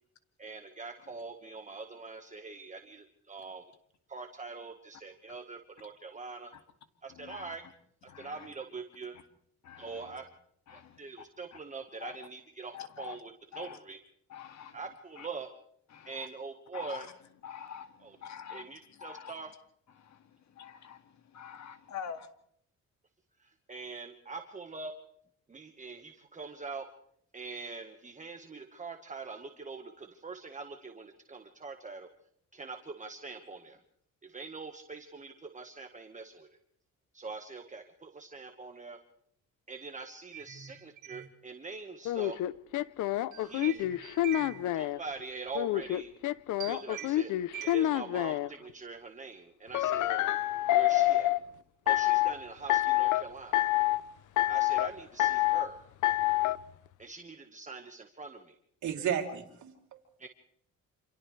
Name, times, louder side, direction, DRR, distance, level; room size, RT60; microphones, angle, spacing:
voice 1, 0.4-3.6 4.1-6.5 7.0-7.6 8.0-9.2 9.8-10.2 10.7-14.0 14.7-15.5 16.0-17.1 18.0-18.2 18.5-19.5 23.4-24.9 25.5-26.9 27.3-32.1 32.5-33.8 34.2-36.6 37.1-39.0 39.7-42.4 43.3-43.9 44.7-46.1 46.7-47.3 47.6-50.2 50.7-51.3 51.8-53.7 54.5-55.9 57.0-58.6 60.2-60.3, right 4 dB, 25° right, 4 dB, 1.5 m, -43 dB
voice 2, 7.1-7.5 8.1-8.5 9.6-10.2 10.7-11.0 11.5-11.6 12.0-12.2 12.7-13.2 13.5-13.8 14.3-14.8 15.2-15.3 15.9-16.3 16.7-17.1 17.4-18.7 19.0-19.4 20.0-22.3, left 8 dB, 65° left, 8 dB, 2.1 m, -46 dB
voice 3, 40.3-40.7 41.1-41.3 43.3-44.8 46.6-47.1 47.5-47.8 58.8-60.0, right 9 dB, 70° right, 2 dB, 3.3 m, -38 dB
sound 1, 42.0-45.0 45.5-48.5 49.7-51.4 51.9-52.3 52.7-53.2 53.5-54.0 54.4-54.9 55.2-55.7 56.0-56.6, left 15 dB, 80° left, 0.7 m, -27 dB
29.0 x 27.0 x 3.3 m, 0.69 s
cardioid pair, 90°, 30 cm